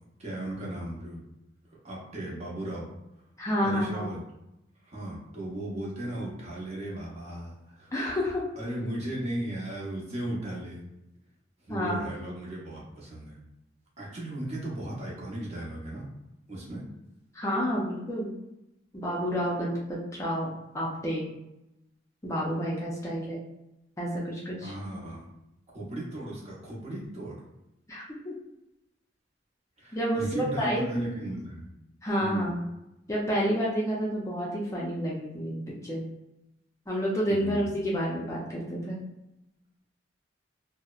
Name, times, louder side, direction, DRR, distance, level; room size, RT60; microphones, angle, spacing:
voice 1, 0.2-1.2 1.8-2.9 3.6-4.2 4.8-7.9 8.6-10.8 11.6-13.4 14.0-16.0 16.5-16.9 24.6-25.3 25.7-27.4 29.8-31.7 32.2-32.6 37.3-37.6, right 1 dB, 35° right, -5 dB, 0.7 m, -36 dB
voice 2, 3.4-4.1 7.9-8.4 11.7-12.0 17.3-18.3 18.9-21.3 22.2-23.4 24.0-24.7 27.9-28.3 29.9-31.1 32.0-32.6 33.1-36.0 36.9-39.0, equal, 15° left, -5 dB, 0.4 m, -29 dB
2.7 x 2.0 x 2.3 m, 0.89 s
head